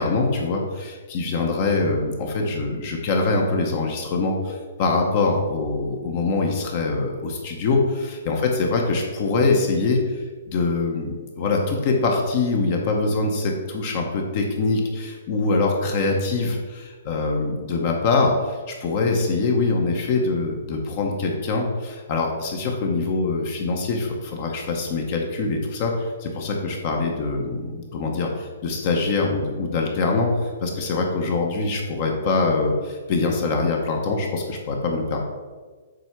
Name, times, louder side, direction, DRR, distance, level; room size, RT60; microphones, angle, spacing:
voice 1, 0.0-35.2, left 3 dB, 30° left, 1 dB, 0.8 m, -24 dB
7.7 x 3.4 x 5.8 m, 1.4 s
hypercardioid pair, 170°, 0 cm